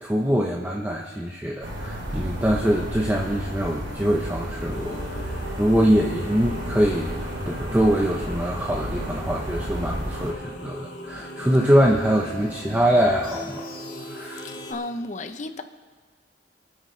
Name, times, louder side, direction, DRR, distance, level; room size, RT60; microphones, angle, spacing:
voice 1, 0.0-7.1 7.4-13.6 14.0-14.5, equal, 10° right, -1 dB, 0.8 m, -23 dB
sound 1, 1.6-10.3, equal, 85° right, 2.6 m, -32 dB
sound 2, 4.7-14.7, equal, 65° left, 3.2 m, -38 dB
voice 2, 14.2-15.6, left 2 dB, 40° left, 8 dB, 0.8 m, -34 dB
28.5 x 9.6 x 3.2 m, 1.5 s
head